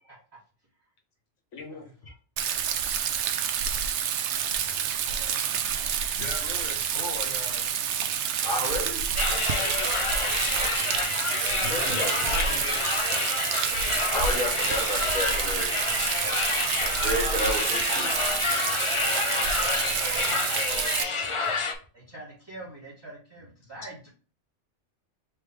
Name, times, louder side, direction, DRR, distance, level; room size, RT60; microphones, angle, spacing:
voice 1, 1.5-1.9 4.6-4.8 6.2-7.7 10.4-10.5 11.6-13.2 15.2-15.3 18.2-18.4 21.0-21.1 21.4-21.5, left 3 dB, 75° left, 3 dB, 1.5 m, -39 dB
Rain, 2.4-21.0, right 8 dB, 70° right, 0.9 m, -28 dB
voice 2, 5.0-5.7 19.9-20.6 21.9-24.1, right 2 dB, 20° right, -7 dB, 1.5 m, -45 dB
voice 3, 8.4-9.0 11.7-12.2 14.1-15.7 17.0-18.1, equal, 40° right, -3 dB, 2.1 m, -30 dB
sound 1, 9.2-21.7, left 4 dB, 35° left, 0.5 m, -29 dB
4.5 x 3.2 x 3.5 m, 0.38 s
omnidirectional pair, 1.3 m